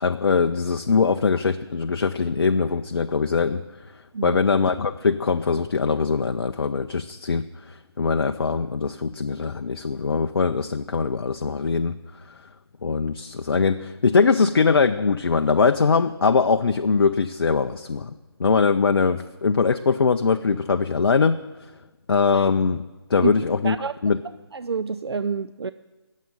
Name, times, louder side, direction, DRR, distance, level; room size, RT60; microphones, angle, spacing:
voice 1, 0.0-3.6 4.2-7.4 8.0-11.9 12.8-13.8 14.0-18.0 18.4-21.4 22.1-22.8 23.1-23.8 24.0-24.2, left 5 dB, 55° left, 8 dB, 0.5 m, -21 dB
voice 2, 24.5-25.7, right 5 dB, 70° right, 13 dB, 0.4 m, -27 dB
19.5 x 7.4 x 6.4 m, 1.2 s
figure-of-eight pair, 155°, 14 cm